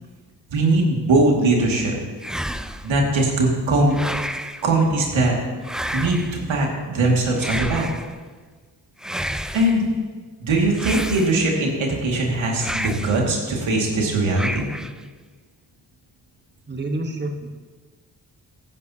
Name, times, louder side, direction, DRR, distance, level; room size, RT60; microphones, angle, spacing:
voice 1, 0.5-2.0 2.8-3.9 4.6-5.4 5.9-7.9 9.5-9.9 10.4-14.7, right 2 dB, 80° right, -1 dB, 2.3 m, -20 dB
sound 1, 2.2-3.0 3.9-4.7 5.6-6.4 7.4-8.2 9.0-9.8 10.7-11.6 12.6-13.2 14.3-15.0, equal, ahead, 0.4 m, -30 dB
voice 2, 16.7-17.5, right 2 dB, 25° right, 3 dB, 1.3 m, -28 dB
15.5 x 9.8 x 2.9 m, 1.4 s
supercardioid pair, 50°, 46 cm